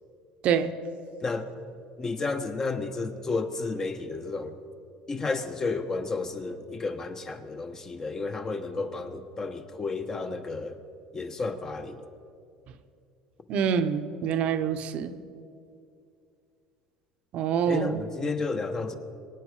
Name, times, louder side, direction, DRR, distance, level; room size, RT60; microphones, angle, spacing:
voice 1, 2.0-4.6 5.1-10.7 11.1-12.0 17.7-19.0, left 3 dB, 25° left, 8 dB, 1.1 m, -32 dB
voice 2, 13.5-15.1 17.3-18.0, right 7 dB, 50° right, 10 dB, 0.9 m, -26 dB
23.5 x 9.3 x 4.9 m, 2.5 s
cardioid pair, 125°, 3 cm